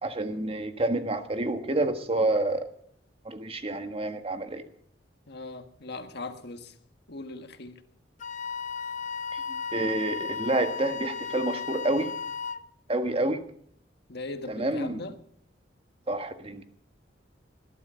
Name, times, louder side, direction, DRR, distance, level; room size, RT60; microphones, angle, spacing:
voice 1, 0.0-2.7 3.2-4.6 9.3-12.1 12.9-13.4 14.5-15.0 16.1-16.6, right 2 dB, 30° right, 8 dB, 1.6 m, -28 dB
voice 2, 5.3-6.7 7.1-7.8 14.1-15.2, left 2 dB, 60° left, 8 dB, 1.6 m, -39 dB
Wind instrument woodwind instrument, 8.2-12.7, left 5 dB, 40° left, 0.7 m, -35 dB
20.5 x 12.0 x 5.7 m, 0.66 s
head